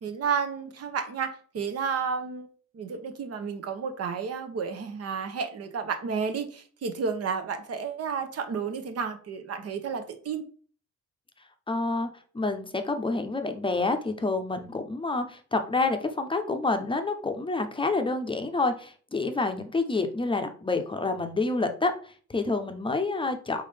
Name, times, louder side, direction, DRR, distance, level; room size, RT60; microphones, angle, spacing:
voice 1, 0.0-2.5 2.7-10.4, right 6 dB, 55° right, 7 dB, 0.9 m, -31 dB
voice 2, 11.7-12.1 12.3-23.6, left 3 dB, 15° left, 6 dB, 0.7 m, -28 dB
4.0 x 3.7 x 3.3 m, 0.43 s
cardioid pair, 90°, 30 cm